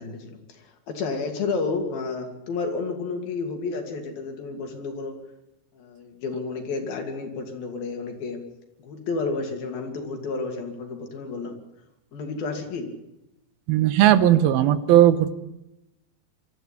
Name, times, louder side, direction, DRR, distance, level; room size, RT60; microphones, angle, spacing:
voice 1, 0.0-5.2 5.7-8.4 8.8-11.6 12.1-12.9, left 4 dB, 75° left, 4 dB, 4.5 m, -31 dB
voice 2, 13.7-15.4, right 12 dB, 85° right, 13 dB, 2.9 m, -17 dB
24.0 x 14.0 x 10.0 m, 0.91 s
omnidirectional pair, 4.2 m